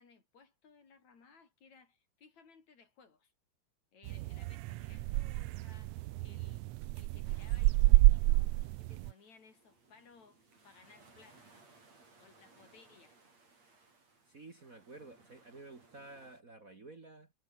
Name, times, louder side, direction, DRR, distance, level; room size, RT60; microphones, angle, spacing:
voice 1, 0.0-3.3 3.9-6.7 6.9-8.5 8.8-11.5 12.2-13.2, left 5 dB, 70° left, 5.5 m, -61 dB
sound 1, 4.1-9.1, right 19 dB, 80° right, 1.6 m, -29 dB
sound 2, 7.2-16.4, right 3 dB, 60° right, 8.1 m, -64 dB
voice 2, 14.3-17.3, right 2 dB, 30° right, 2.1 m, -52 dB
omnidirectional pair, 3.4 m